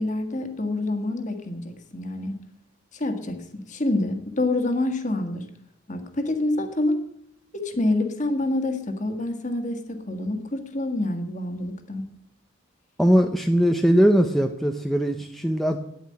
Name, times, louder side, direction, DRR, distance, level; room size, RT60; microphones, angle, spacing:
voice 1, 0.0-2.3 2.9-5.5 5.9-7.0 7.5-12.0, left 2 dB, 35° left, 6 dB, 1.6 m, -27 dB
voice 2, 13.0-15.9, equal, ahead, 3 dB, 0.6 m, -20 dB
10.5 x 9.4 x 8.7 m, 0.76 s
head